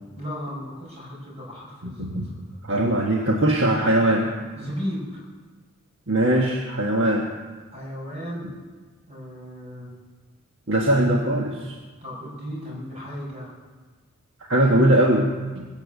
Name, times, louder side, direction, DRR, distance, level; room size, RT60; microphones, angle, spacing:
voice 1, 0.2-2.2 2.5-2.6 4.5-5.2 7.7-8.5 9.1-9.9 12.0-13.5, equal, 30° right, -4 dB, 6.5 m, -35 dB
voice 2, 1.8-2.3 2.6-4.3 6.1-7.3 10.7-11.8 14.5-15.3 15.5-15.7, right 1 dB, 60° right, 0 dB, 1.4 m, -20 dB
21.0 x 7.3 x 8.3 m, 1.4 s
head